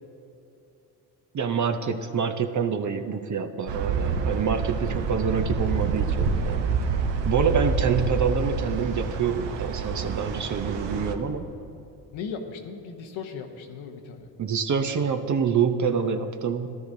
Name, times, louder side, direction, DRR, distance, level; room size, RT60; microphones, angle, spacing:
voice 1, 1.3-6.7 7.2-11.4 14.4-16.8, right 6 dB, 40° right, 8 dB, 0.7 m, -26 dB
sound 1, 3.7-11.1, right 5 dB, 65° right, 0.9 m, -27 dB
sound 2, 7.1-10.0, left 3 dB, 55° left, 0.8 m, -36 dB
voice 2, 12.1-14.3, left 5 dB, 80° left, 5 dB, 1.0 m, -37 dB
13.0 x 11.5 x 2.7 m, 2.7 s
supercardioid pair, 60°, 46 cm